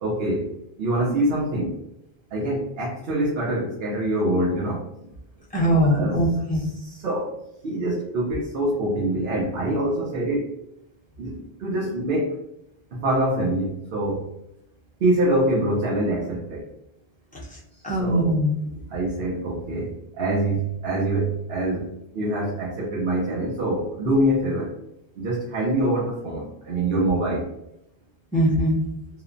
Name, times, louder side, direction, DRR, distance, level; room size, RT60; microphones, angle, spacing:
voice 1, 0.0-0.5 0.8-1.7 2.3-5.1 5.9-6.2 6.5-7.3 7.6-10.5 11.2-11.3 11.6-12.3 12.9-14.3 15.0-16.7 17.8-18.3 18.9-21.9 22.1-24.8 25.2-27.5, right 1 dB, 70° right, -4 dB, 0.8 m, -25 dB
voice 2, 5.5-6.6 17.8-18.5 28.3-28.8, equal, 10° left, -7 dB, 0.6 m, -21 dB
3.0 x 2.1 x 2.4 m, 0.83 s
omnidirectional pair, 1.1 m